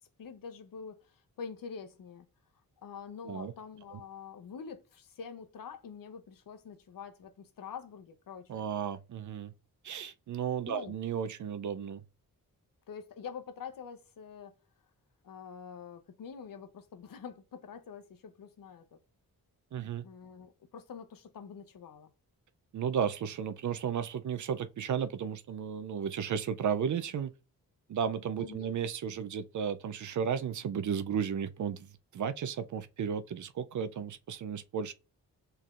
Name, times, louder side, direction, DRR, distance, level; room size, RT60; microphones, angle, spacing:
voice 1, 0.2-2.3 2.8-8.5 10.7-10.9 12.9-14.5 15.2-19.0 20.0-22.1 28.4-28.7, left 6 dB, 65° left, 0.7 m, -46 dB
voice 2, 8.5-9.5 9.8-12.0 19.7-20.1 22.7-27.3 27.9-34.9, right 7 dB, 55° right, 0.5 m, -34 dB
5.5 x 3.4 x 2.4 m
cardioid pair, 80°, 36 cm